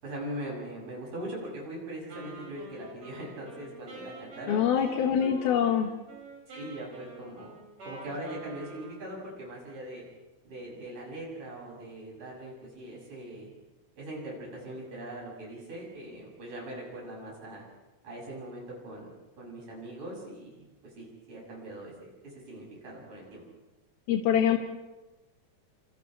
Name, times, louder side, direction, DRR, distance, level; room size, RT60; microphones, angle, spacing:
voice 1, 0.0-4.6 5.1-5.4 6.5-7.6 7.8-10.0 10.5-13.5 14.0-17.6 18.0-23.4, right 1 dB, 60° right, -3 dB, 8.8 m, -41 dB
Wind instrument woodwind instrument, 2.1-9.2, right 2 dB, 80° right, 8.4 m, -47 dB
voice 2, 4.5-5.9 24.1-24.6, left 8 dB, 90° left, 3 dB, 3.2 m, -24 dB
29.0 x 28.5 x 3.4 m, 1.1 s
omnidirectional pair, 4.1 m